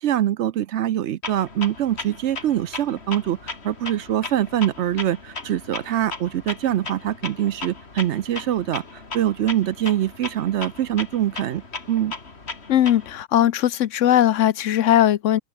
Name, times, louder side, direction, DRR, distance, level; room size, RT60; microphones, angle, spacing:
voice 1, 0.0-11.6 11.9-12.1, right 11 dB, 65° right, 0.8 m, -24 dB
Clock, 1.2-13.2, left 3 dB, 50° left, 2.8 m, -37 dB
voice 2, 12.7-15.4, left 11 dB, 70° left, 1.0 m, -19 dB
open air
omnidirectional pair, 1.4 m